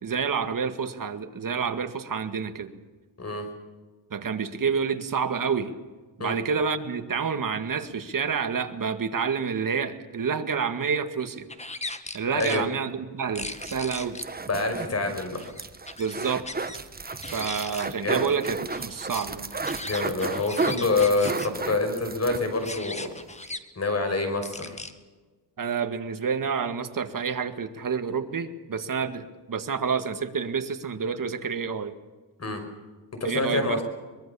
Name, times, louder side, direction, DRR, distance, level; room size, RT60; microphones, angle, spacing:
voice 1, 0.0-2.8 4.1-5.7 6.2-11.5 12.1-14.2 16.0-16.5 17.3-19.5 25.6-31.9 33.2-33.8, right 6 dB, 50° right, 8 dB, 2.1 m, -28 dB
sound 1, 11.5-12.6 13.3-14.2 15.2-16.8 17.0-17.9 18.2-21.5 22.5-23.6 24.4-24.9, left 2 dB, 15° left, 1.7 m, -38 dB
sound 2, 13.4-22.8 23.1-23.2 23.4-23.5, right 3 dB, 20° right, 1.2 m, -34 dB
voice 2, 14.5-15.4 18.0-18.3 19.8-23.1 23.8-24.8 32.4-32.6 33.2-33.8, left 3 dB, 35° left, 6 dB, 5.8 m, -26 dB
23.5 x 22.0 x 7.2 m, 1.3 s
cardioid pair, 115°, 43 cm